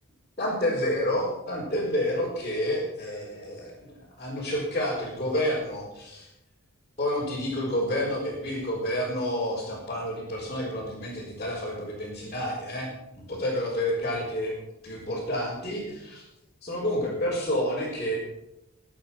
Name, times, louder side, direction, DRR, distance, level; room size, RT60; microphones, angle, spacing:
voice 1, 0.4-6.3 7.0-14.5 14.8-16.2 16.6-18.2, left 1 dB, 30° left, -8 dB, 4.8 m, -29 dB
21.5 x 8.6 x 6.0 m, 0.89 s
head